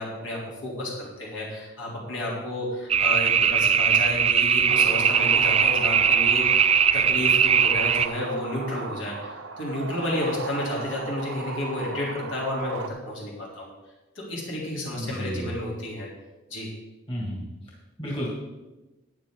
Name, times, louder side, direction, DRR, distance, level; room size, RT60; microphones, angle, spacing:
voice 1, 0.0-13.7 14.2-16.1 16.5-16.7, left 1 dB, 60° left, -4 dB, 3.5 m, -31 dB
sound 1, 2.9-8.1, right 7 dB, 30° right, 0.3 m, -20 dB
sound 2, 4.7-12.9, right 4 dB, 65° right, 0.8 m, -37 dB
voice 2, 14.9-15.5 17.1-17.5 18.0-18.3, equal, 25° left, -5 dB, 2.7 m, -31 dB
13.5 x 9.3 x 3.9 m, 1.1 s
head